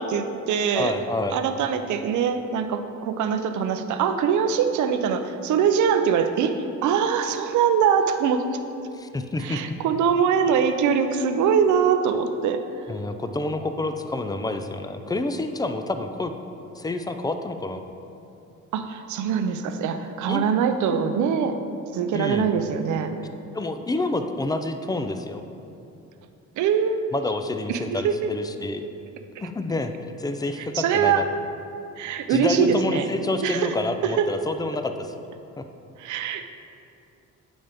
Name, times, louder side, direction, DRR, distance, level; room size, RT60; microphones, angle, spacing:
voice 1, 0.0-0.9 1.3-8.5 9.4-12.6 18.7-21.6 21.9-23.2 26.6-27.1 27.7-28.3 30.6-31.3 32.0-33.1 33.4-33.7 34.0-34.3 36.0-36.5, right 7 dB, 75° right, 8 dB, 0.6 m, -23 dB
voice 2, 0.8-1.4 9.0-9.6 12.9-16.3 16.8-17.8 20.3-20.5 22.1-22.5 23.5-25.4 27.1-28.9 29.4-29.9 30.2-31.2 32.3-35.1 35.6-35.7, left 2 dB, 15° left, 7 dB, 0.4 m, -28 dB
8.8 x 5.4 x 3.5 m, 2.7 s
cardioid pair, 90°, 30 cm